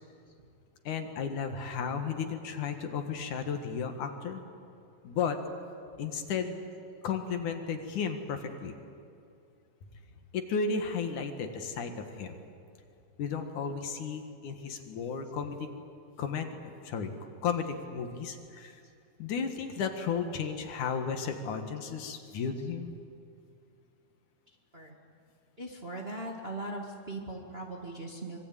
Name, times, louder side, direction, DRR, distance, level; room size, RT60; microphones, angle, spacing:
voice 1, 0.8-4.4 5.0-5.4 6.0-6.6 7.0-8.7 10.3-12.4 13.2-15.6 16.2-17.1 17.4-18.8 19.2-22.9, left 6 dB, 70° left, 6 dB, 3.0 m, -34 dB
voice 2, 25.6-28.4, right 2 dB, 20° right, 0 dB, 2.0 m, -39 dB
25.0 x 24.0 x 9.1 m, 2.5 s
omnidirectional pair, 3.8 m